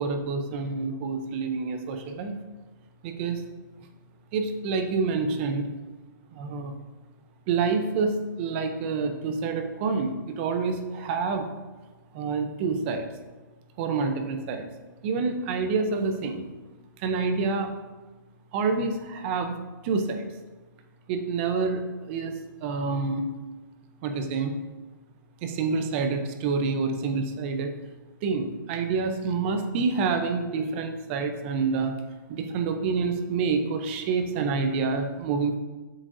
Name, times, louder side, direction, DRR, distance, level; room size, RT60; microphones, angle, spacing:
voice 1, 0.0-2.4 3.0-3.4 4.3-5.6 6.3-6.7 7.5-11.5 12.1-13.1 13.8-14.7 15.0-16.4 17.0-17.7 18.5-19.5 19.8-20.3 21.1-21.8 22.1-22.3 22.6-23.3 24.0-24.5 25.4-27.7 28.2-31.9 32.3-35.5, right 4 dB, 35° right, 6 dB, 0.6 m, -27 dB
7.7 x 6.0 x 2.6 m, 1.2 s
hypercardioid pair, 150°, 11 cm